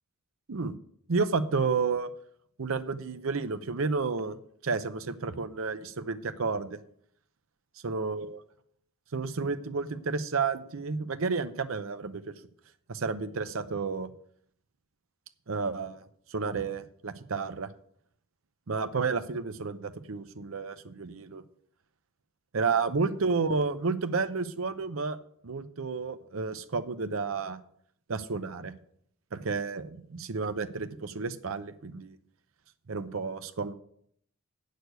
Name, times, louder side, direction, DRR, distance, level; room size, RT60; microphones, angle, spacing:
voice 1, 1.1-2.1 2.6-4.4 4.6-6.8 7.8-8.4 9.1-12.3 12.9-14.1 15.5-16.0 16.3-17.7 18.7-21.4 22.5-25.2 25.4-27.6 28.1-28.7 29.3-32.2 32.9-33.7, right 4 dB, 70° right, 9 dB, 0.7 m, -31 dB
8.1 x 6.6 x 7.9 m, 0.66 s
head